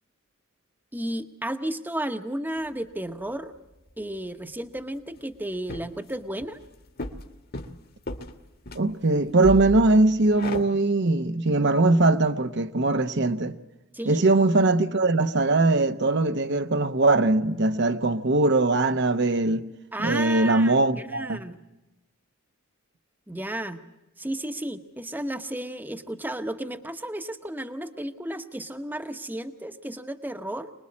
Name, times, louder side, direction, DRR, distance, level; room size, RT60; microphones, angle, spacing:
voice 1, 0.9-3.5 4.0-6.6 13.9-14.3 19.9-21.6 23.3-23.8 24.2-30.7, right 1 dB, 10° right, 1.0 m, -33 dB
sound 1, 2.7-2.8 4.8-4.9 5.1-5.2 5.5-6.1 6.4-8.8 9.1-10.6, left 1 dB, 45° left, 1.6 m, -35 dB
voice 2, 8.7-13.6 14.1-19.6 20.0-21.4, right 2 dB, 55° right, 0.9 m, -21 dB
25.5 x 21.0 x 8.6 m
head